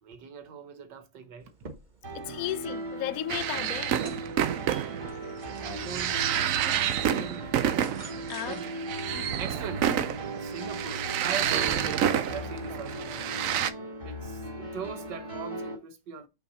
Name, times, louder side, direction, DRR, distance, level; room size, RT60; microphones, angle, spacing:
voice 1, 0.0-1.5 5.4-6.3 6.7-7.8 8.5-8.7 9.4-9.9 10.4-13.4 14.0-16.3, right 6 dB, 70° right, 1.6 m, -41 dB
sound 1, 1.4-11.8, right 4 dB, 40° right, 0.6 m, -51 dB
sound 2, 2.0-15.8, right 1 dB, 15° right, 2.5 m, -38 dB
voice 2, 2.1-4.1 6.8-6.9 8.3-8.7 9.1-9.4, left 14 dB, 70° left, 0.8 m, -35 dB
sound 3, 3.3-13.7, right 10 dB, 90° right, 0.7 m, -29 dB
5.6 x 4.6 x 4.2 m
omnidirectional pair, 2.0 m